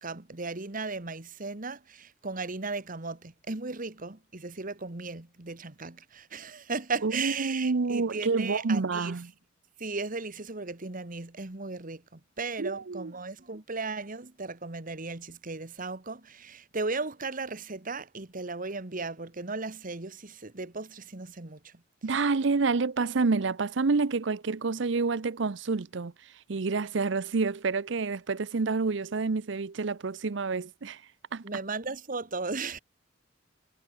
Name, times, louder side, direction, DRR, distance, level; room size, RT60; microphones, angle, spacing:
voice 1, 0.0-9.1 9.8-21.7 31.4-32.8, right 3 dB, 45° right, 1.6 m, -36 dB
voice 2, 7.0-9.3 12.6-13.1 22.0-26.1 26.5-31.0 31.3-31.4, right 4 dB, 70° right, 0.7 m, -28 dB
head